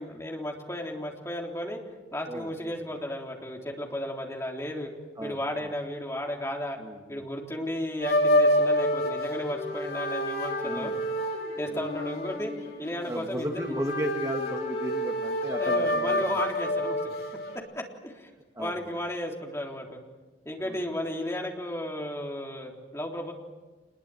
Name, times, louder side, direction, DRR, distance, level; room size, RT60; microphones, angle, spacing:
voice 1, 0.0-1.8 2.1-4.9 5.2-6.8 7.1-10.9 11.6-12.5 12.8-13.7 15.6-17.2 17.8-18.3 18.6-20.0 20.5-23.3, left 1 dB, 15° left, 0 dB, 3.6 m, -34 dB
voice 2, 2.3-2.7 5.2-5.7 6.8-7.3 10.6-10.9 11.7-11.8 13.1-16.4 18.6-19.0 20.6-20.8, equal, 20° right, 2 dB, 1.8 m, -35 dB
sound 1, 8.0-17.6, equal, 55° left, 7.2 m, -28 dB
27.0 x 21.0 x 9.2 m, 1.2 s
head